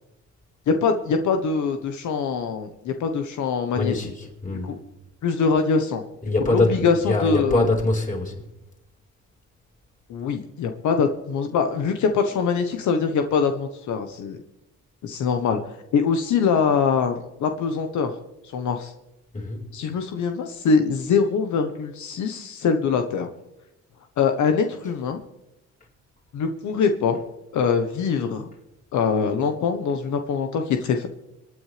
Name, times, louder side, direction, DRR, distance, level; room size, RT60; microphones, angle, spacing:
voice 1, 0.7-4.1 4.6-4.8 5.2-6.0 6.5-7.7 10.1-14.4 15.0-15.6 15.9-18.2 18.5-18.9 19.7-23.3 24.2-25.2 26.3-27.2 27.5-28.5 28.9-31.1, left 5 dB, 75° left, 6 dB, 1.2 m, -23 dB
voice 2, 3.7-4.8 6.2-8.4 19.3-19.7, left 2 dB, 25° left, -2 dB, 4.9 m, -24 dB
26.0 x 9.6 x 3.3 m, 0.91 s
cardioid pair, 90°, 30 cm